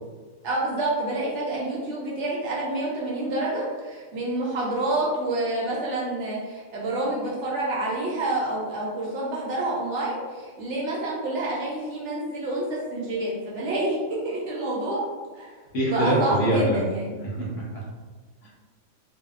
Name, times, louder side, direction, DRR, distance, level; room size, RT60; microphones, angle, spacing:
voice 1, 0.4-15.0 15.3-15.5 15.9-17.1, right 2 dB, 65° right, -5 dB, 0.8 m, -28 dB
voice 2, 15.7-16.9 17.2-17.8 18.4-18.5, right 1 dB, 65° left, -5 dB, 1.0 m, -24 dB
2.6 x 2.1 x 2.4 m, 1.4 s
omnidirectional pair, 1.5 m